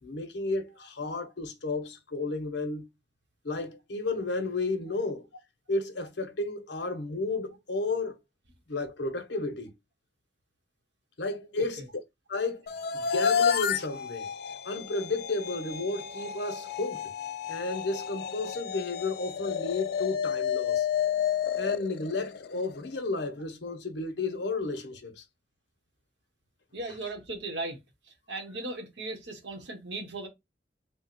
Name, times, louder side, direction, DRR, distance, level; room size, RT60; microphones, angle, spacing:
voice 1, 0.0-2.8 3.4-5.3 5.7-8.2 8.7-9.7 11.2-11.8 12.3-12.6 12.9-14.3 14.6-17.1 17.5-20.9 21.6-25.2, left 3 dB, 75° left, 1.0 m, -32 dB
sound 1, 12.7-22.8, left 8 dB, 60° left, 0.4 m, -31 dB
voice 2, 26.7-27.8 28.3-30.3, right 2 dB, 85° right, 1.3 m, -37 dB
3.5 x 2.3 x 4.3 m
head